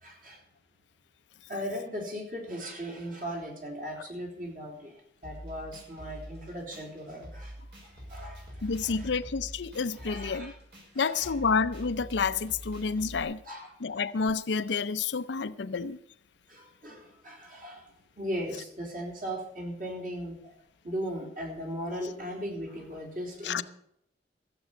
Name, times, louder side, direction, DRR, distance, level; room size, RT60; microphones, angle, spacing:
voice 1, 0.0-0.4 1.5-4.9 5.2-7.5 8.1-9.1 10.0-10.5 11.0-11.4 13.4-13.7 16.5-17.8 18.2-20.4 20.8-23.6, equal, 50° right, 3.9 m, -38 dB
sound 1, 5.2-13.2, equal, 75° right, 5.9 m, -45 dB
voice 2, 8.6-10.5 11.0-13.4 13.8-16.0 23.4-23.6, left 5 dB, 80° left, 0.6 m, -29 dB
15.0 x 7.8 x 7.0 m
head